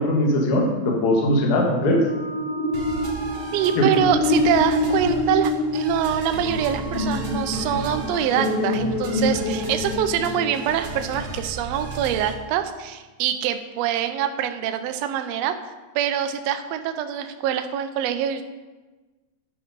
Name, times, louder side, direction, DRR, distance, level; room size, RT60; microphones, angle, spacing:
voice 1, 0.0-2.0 3.8-3.9, left 1 dB, 50° left, -1 dB, 2.0 m, -20 dB
sound 1, 1.8-11.2, left 2 dB, 70° left, 4.7 m, -26 dB
sound 2, 2.7-12.3, right 3 dB, 50° right, 1.3 m, -35 dB
voice 2, 3.5-15.5 15.9-18.4, right 9 dB, 75° right, 8 dB, 1.6 m, -24 dB
11.0 x 5.5 x 5.4 m, 1.2 s
omnidirectional pair, 3.4 m